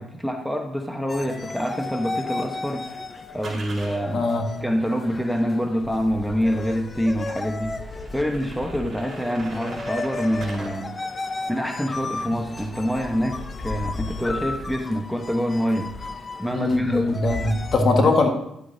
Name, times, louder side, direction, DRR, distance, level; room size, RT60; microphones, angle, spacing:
voice 1, 0.0-2.9 3.3-4.3 4.6-7.8 8.1-11.0 11.5-15.9 16.4-17.2 18.0-18.1, equal, ahead, 4 dB, 1.0 m, -26 dB
sound 1, 1.1-17.8, left 3 dB, 30° left, 0.6 m, -34 dB
sound 2, 2.3-4.0 5.6-5.7 6.2-6.3 6.8-6.9 7.2-7.3 7.8-10.7 11.0-14.8 15.2-16.3, right 2 dB, 30° right, 3.9 m, -44 dB
voice 2, 4.1-4.5 16.5-18.3, left 3 dB, 55° left, 3 dB, 1.4 m, -21 dB
11.0 x 8.3 x 2.7 m, 0.79 s
cardioid pair, 90°, 0 cm